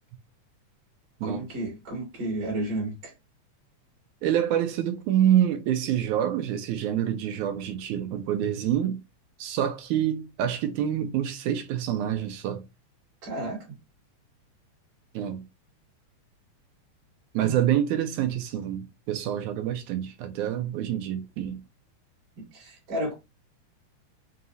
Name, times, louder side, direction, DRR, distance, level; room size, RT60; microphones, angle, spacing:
voice 1, 1.2-3.1 13.2-13.6 17.4-17.6 22.4-23.1, right 1 dB, 50° right, 2.8 m, -32 dB
voice 2, 4.2-9.0 9.4-12.6 15.1-15.4 17.3-21.6, right 10 dB, 85° right, 2.0 m, -27 dB
5.5 x 2.8 x 2.6 m
omnidirectional pair, 3.5 m